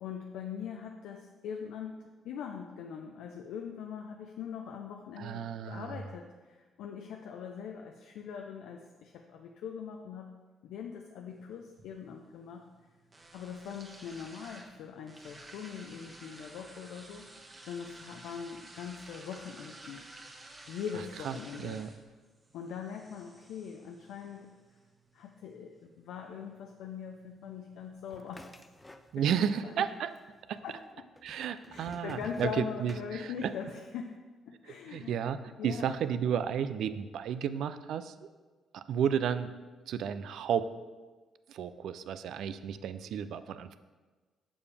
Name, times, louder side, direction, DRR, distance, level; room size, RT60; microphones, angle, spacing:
voice 1, 0.0-10.3 10.6-12.7 13.3-17.4 17.7-20.0 20.7-21.8 22.5-24.5 25.1-28.5 29.2-29.4 29.8-29.9 30.6-31.1 31.7-34.2 34.5-35.2 35.6-35.9, left 7 dB, 85° left, 3 dB, 0.5 m, -42 dB
voice 2, 5.2-6.0 21.2-21.4 21.6-21.9 29.1-30.1 30.5-30.6 31.2-33.5 34.7-38.3 38.7-39.5 39.9-40.7 41.5-43.8, right 8 dB, 75° right, 12 dB, 0.4 m, -32 dB
sound 1, 11.3-29.3, right 2 dB, 25° right, 1.3 m, -54 dB
sound 2, 28.1-29.5 29.8-30.5 31.2-33.6, left 2 dB, 15° left, 0.4 m, -51 dB
7.0 x 6.9 x 3.4 m, 1.3 s
cardioid pair, 90°, 0 cm